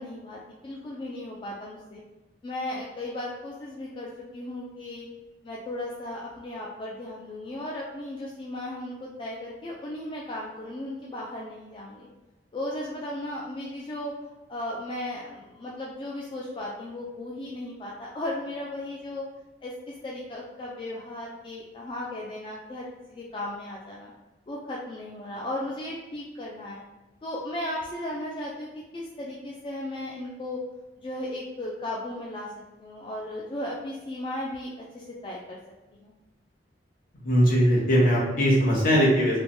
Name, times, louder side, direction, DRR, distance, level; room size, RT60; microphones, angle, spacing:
voice 1, 0.0-2.0 2.4-5.1 5.4-12.1 12.5-14.1 14.5-19.3 19.6-24.1 24.5-26.8 27.2-28.7 28.9-30.6 31.0-32.5 32.8-35.6 36.0-36.1, left 1 dB, 30° left, -4 dB, 0.3 m, -36 dB
voice 2, 37.2-39.4, equal, 55° left, -5 dB, 0.9 m, -20 dB
3.1 x 2.1 x 2.6 m, 1.1 s
head